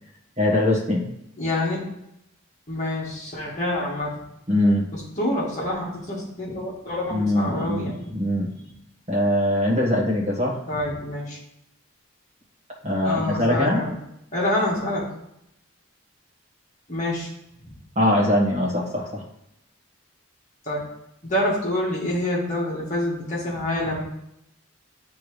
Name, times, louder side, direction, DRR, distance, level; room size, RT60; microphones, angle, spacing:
voice 1, 0.4-1.1 4.5-4.9 7.1-8.5 9.1-10.6 12.8-13.8 17.9-19.2, left 1 dB, 30° right, -4 dB, 1.4 m, -22 dB
voice 2, 1.4-1.9 2.7-4.2 4.9-7.9 10.7-11.4 13.0-13.9 14.3-15.0 16.9-17.3 17.6-17.7 20.6-20.8 21.2-24.0, left 1 dB, 35° left, -6 dB, 1.8 m, -27 dB
8.2 x 3.5 x 3.2 m, 0.81 s
head